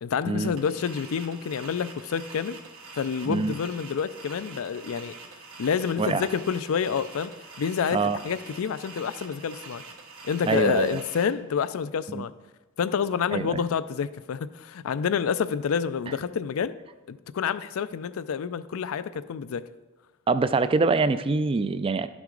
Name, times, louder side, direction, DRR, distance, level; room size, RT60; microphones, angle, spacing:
voice 1, 0.0-2.6 2.9-5.1 5.6-7.3 7.6-8.0 8.2-9.8 10.2-12.3 12.8-16.8 17.1-19.6, left 6 dB, 80° left, 15 dB, 0.4 m, -28 dB
sound 1, 0.6-11.2, right 4 dB, 75° right, 1.2 m, -45 dB
voice 2, 10.5-11.0 12.1-12.2 13.3-13.6 20.3-22.1, right 4 dB, 25° right, 12 dB, 0.3 m, -24 dB
12.0 x 6.1 x 3.8 m, 1.1 s
head